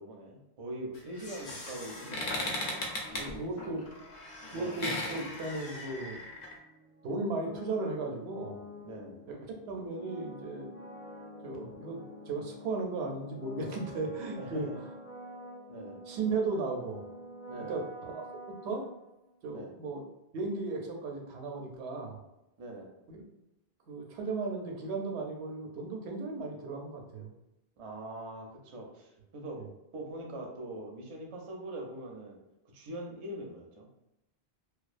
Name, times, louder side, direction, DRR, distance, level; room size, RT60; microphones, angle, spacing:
voice 1, 0.0-3.9 4.5-4.8 8.8-9.2 14.4-14.8 15.7-16.0 17.5-17.8 19.5-19.7 22.6-22.9 27.8-29.6 29.9-32.4 32.7-33.9, right 1 dB, 45° right, 0 dB, 0.4 m, -43 dB
sound 1, 0.9-6.5, left 1 dB, 60° left, 0.7 m, -38 dB
sound 2, 1.7-19.4, left 1 dB, 20° left, 0.4 m, -49 dB
voice 2, 3.2-3.8 4.5-6.2 7.0-8.6 9.3-9.4 9.7-10.7 11.4-12.0 12.3-14.7 16.1-17.0 17.7-18.2 18.6-18.8 19.4-20.0 20.3-22.2 23.1-23.2 23.9-27.3, right 3 dB, 90° right, 2 dB, 0.8 m, -35 dB
2.3 x 2.2 x 2.4 m, 0.90 s
omnidirectional pair, 1.1 m